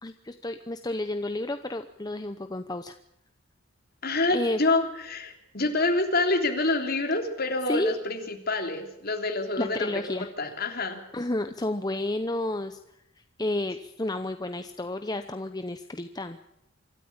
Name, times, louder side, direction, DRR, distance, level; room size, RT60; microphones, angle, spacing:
voice 1, 0.0-2.9 4.3-4.6 7.6-7.9 9.6-10.3 11.1-12.8 13.4-16.4, left 1 dB, 20° left, 8 dB, 0.8 m, -31 dB
voice 2, 4.0-11.0, left 2 dB, 45° left, 4 dB, 3.3 m, -27 dB
25.5 x 13.5 x 8.8 m, 0.81 s
head